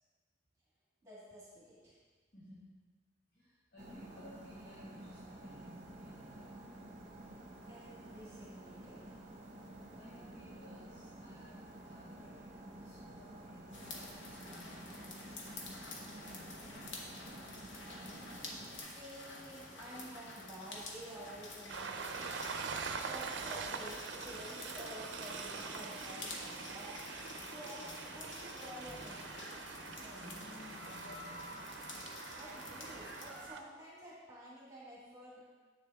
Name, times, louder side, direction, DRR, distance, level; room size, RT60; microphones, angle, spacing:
voice 1, 1.0-2.0 7.7-9.1 18.9-22.3 22.9-27.0 27.5-29.4 32.3-35.4, equal, 15° right, -7 dB, 1.7 m, -51 dB
voice 2, 2.3-2.6 3.3-6.6 9.9-15.7 16.1-17.6 29.9-31.6, left 1 dB, 60° left, -10 dB, 2.1 m, -57 dB
sound 1, 3.8-18.8, right 1 dB, 35° right, 0.9 m, -51 dB
sound 2, 13.7-33.5, left 2 dB, 85° left, 1.1 m, -49 dB
Train, 21.7-33.6, right 5 dB, 70° right, 0.5 m, -44 dB
8.2 x 6.7 x 3.5 m, 1.4 s
head